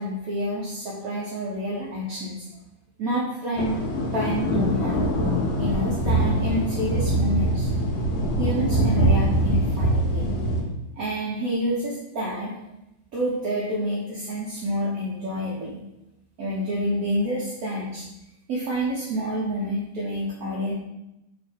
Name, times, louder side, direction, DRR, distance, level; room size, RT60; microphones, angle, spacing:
voice 1, 0.0-2.5 3.0-5.0 5.6-7.7 8.4-10.3 11.0-12.5 13.1-15.8 16.4-18.1 18.5-20.7, equal, 90° right, -5 dB, 0.7 m, -28 dB
sound 1, 3.6-10.6, right 1 dB, 90° left, 1.5 m, -23 dB
3.5 x 2.4 x 3.5 m, 0.91 s
omnidirectional pair, 2.2 m